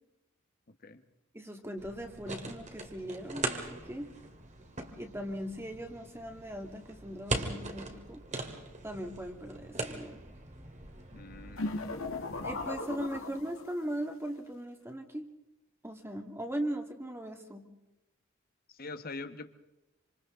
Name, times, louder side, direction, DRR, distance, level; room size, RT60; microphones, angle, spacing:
voice 1, 1.3-4.1 5.0-8.2 8.8-10.2 12.4-15.3 15.8-17.7, right 1 dB, 10° right, 4 dB, 2.1 m, -39 dB
sound 1, 1.8-12.7, right 2 dB, 35° right, 2.4 m, -41 dB
voice 2, 11.1-11.8 18.7-19.5, left 3 dB, 45° left, 10 dB, 1.4 m, -43 dB
sound 2, 11.6-13.9, left 2 dB, 90° left, 1.7 m, -37 dB
27.0 x 27.0 x 3.8 m, 0.95 s
head